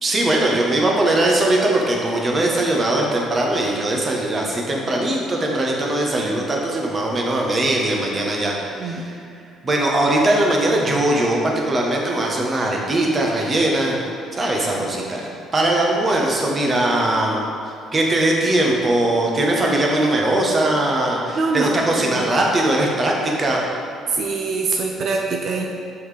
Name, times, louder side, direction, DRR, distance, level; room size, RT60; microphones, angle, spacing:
voice 1, 0.0-9.1 9.6-14.0 14.3-15.2 15.5-17.5 17.9-23.6, right 1 dB, 35° right, -1 dB, 1.2 m, -20 dB
voice 2, 8.7-9.1 21.3-22.2 24.1-25.6, right 4 dB, 55° right, 1 dB, 0.5 m, -24 dB
6.3 x 5.5 x 3.4 m, 2.4 s
hypercardioid pair, 50°, 0 cm